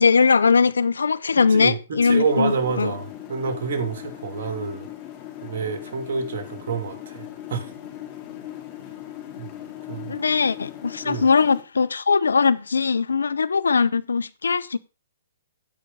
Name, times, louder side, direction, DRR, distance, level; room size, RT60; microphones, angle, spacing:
voice 1, 0.0-2.9 10.1-14.8, left 5 dB, 85° left, 0.6 m, -20 dB
voice 2, 1.5-4.9 5.4-7.7 9.4-9.5 9.9-10.1 11.1-11.3, right 5 dB, 55° right, 2.7 m, -28 dB
sound 1, 2.0-11.6, left 12 dB, 30° left, 2.8 m, -39 dB
15.5 x 5.2 x 4.0 m
hypercardioid pair, 135°, 0 cm